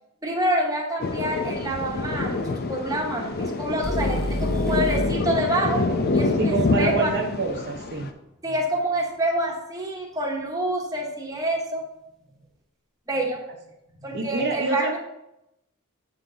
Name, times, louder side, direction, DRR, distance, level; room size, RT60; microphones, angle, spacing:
voice 1, 0.2-5.8 6.1-7.1 8.4-11.8 13.1-13.4 14.0-15.0, right 1 dB, 15° right, 0 dB, 1.0 m, -27 dB
Thunder, 1.0-8.1, left 3 dB, 45° left, 0.5 m, -26 dB
sound 1, 3.8-7.8, equal, ahead, 0.7 m, -32 dB
voice 2, 6.4-8.1 14.1-15.0, right 3 dB, 50° right, 1 dB, 0.7 m, -26 dB
8.1 x 3.9 x 3.8 m, 0.86 s
head